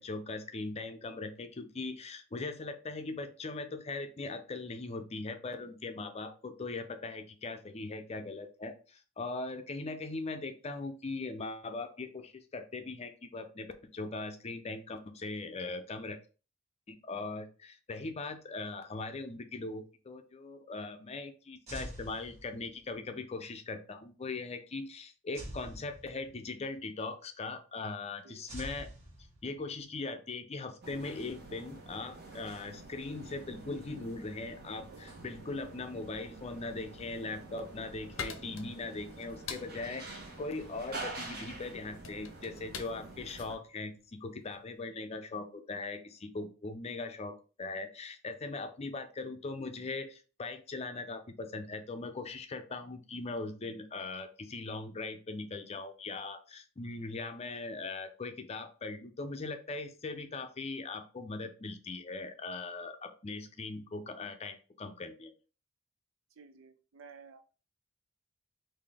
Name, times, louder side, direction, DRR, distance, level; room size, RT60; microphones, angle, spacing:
voice 1, 0.0-16.2 16.9-28.9 29.4-65.3, left 3 dB, 30° left, 8 dB, 0.5 m, -40 dB
sound 1, 21.7-22.9 25.3-26.6 28.5-29.8, equal, 35° right, 1.3 m, -46 dB
voice 2, 28.2-28.6 34.9-35.1 66.3-67.5, right 5 dB, 80° right, 9 dB, 0.6 m, -55 dB
sound 2, 30.8-43.6, right 2 dB, 55° right, 1.2 m, -47 dB
sound 3, 38.1-44.7, left 6 dB, 90° left, 0.6 m, -46 dB
3.9 x 2.6 x 3.3 m, 0.35 s
head